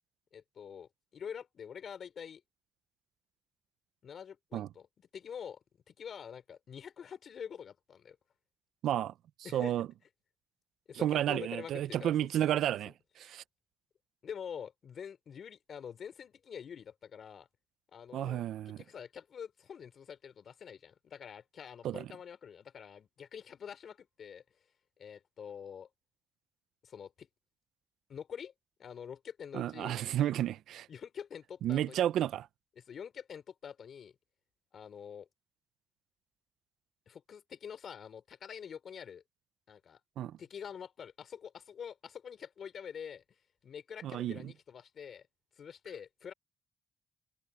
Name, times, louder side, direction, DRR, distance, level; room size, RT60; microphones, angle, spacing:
voice 1, 0.3-2.4 4.0-4.9 5.1-5.6 5.9-8.2 9.4-9.7 10.9-12.8 13.2-13.4 14.2-17.5 17.9-24.4 25.0-25.9 26.8-27.3 28.1-28.5 28.8-30.0 30.9-32.0 32.8-34.1 34.7-35.3 37.1-39.2 39.7-40.0 40.4-43.2 43.6-45.3 45.6-46.3, left 7 dB, 55° left, 4.2 m, -46 dB
voice 2, 8.8-9.1 9.5-9.9 10.9-13.4 18.1-18.8 21.8-22.1 29.5-30.9 31.6-32.5 40.2-40.4 44.0-44.5, right 11 dB, 75° right, 0.7 m, -32 dB
cardioid pair, 90°, 0 cm